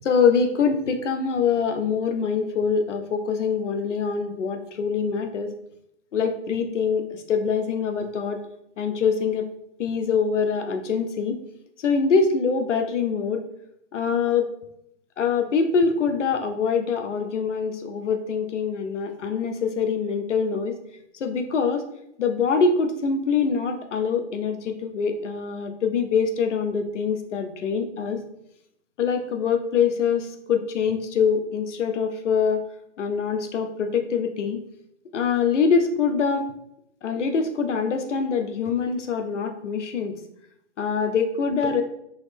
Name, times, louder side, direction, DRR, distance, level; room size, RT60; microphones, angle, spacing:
voice 1, 0.0-5.5 6.1-8.4 8.8-9.5 9.8-11.4 11.8-13.4 13.9-14.5 15.2-20.7 21.2-21.8 22.2-28.2 29.0-32.6 33.0-34.6 35.1-36.5 37.0-40.1 40.8-41.8, left 5 dB, 80° left, 7 dB, 0.8 m, -24 dB
4.0 x 3.0 x 3.3 m, 0.76 s
hypercardioid pair, 145°, 36 cm